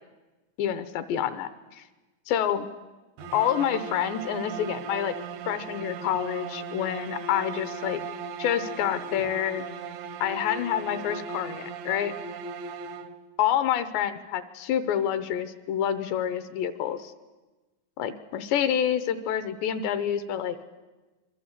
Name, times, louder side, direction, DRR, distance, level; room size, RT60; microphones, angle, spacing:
voice 1, 0.6-1.8 2.3-2.7 3.3-5.2 5.5-8.0 8.4-9.7 10.2-12.1 13.4-17.1 18.0-20.8, left 10 dB, 75° left, 11 dB, 3.1 m, -28 dB
sound 1, 3.2-13.4, right 5 dB, 75° right, 2.1 m, -37 dB
26.5 x 23.0 x 8.2 m, 1.2 s
omnidirectional pair, 5.3 m